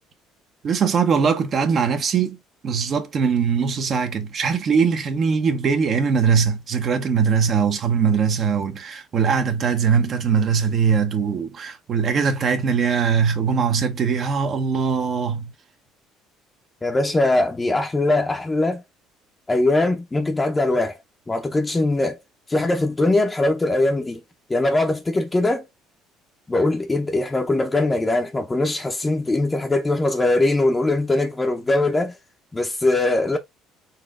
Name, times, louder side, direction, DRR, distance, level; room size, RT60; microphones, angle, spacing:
voice 1, 0.6-2.4 2.6-15.5, right 6 dB, 50° right, 0.7 m, -21 dB
voice 2, 16.8-18.8 19.5-21.0 21.3-22.2 22.5-24.2 24.5-25.6 26.5-32.2 32.5-33.4, left 2 dB, 20° left, 0.6 m, -21 dB
4.1 x 2.5 x 2.4 m
supercardioid pair, 80°, 0 cm